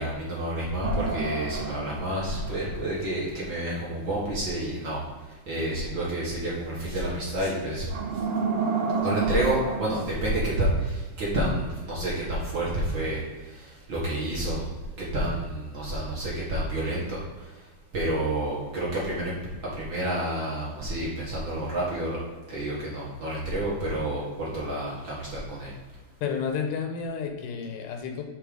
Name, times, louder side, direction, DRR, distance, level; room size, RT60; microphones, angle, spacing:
voice 1, 0.0-5.0 5.3-7.9 9.0-14.7 15.0-17.6 17.9-19.4 19.6-22.2 22.5-25.7, right 1 dB, 45° right, -6 dB, 1.9 m, -29 dB
sound 1, 0.8-3.2 7.9-10.0, right 4 dB, 85° right, 1.2 m, -30 dB
voice 2, 26.2-28.2, left 6 dB, 80° left, 4 dB, 2.4 m, -31 dB
8.1 x 4.4 x 5.1 m, 1.3 s
omnidirectional pair, 3.8 m